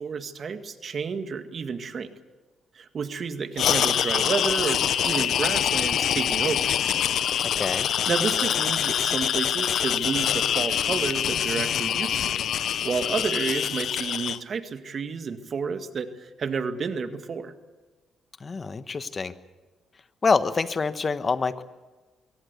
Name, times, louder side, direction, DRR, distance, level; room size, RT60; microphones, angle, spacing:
voice 1, 0.0-2.1 2.7-6.7 8.1-12.4 12.8-17.5, right 5 dB, 50° right, 8 dB, 1.9 m, -30 dB
sound 1, 3.6-14.4, left 9 dB, 70° left, 0.7 m, -25 dB
voice 2, 7.4-7.9 18.4-19.3 20.2-21.6, left 4 dB, 35° left, 12 dB, 1.2 m, -26 dB
23.5 x 17.5 x 8.3 m, 1.2 s
cardioid pair, 90°, 0 cm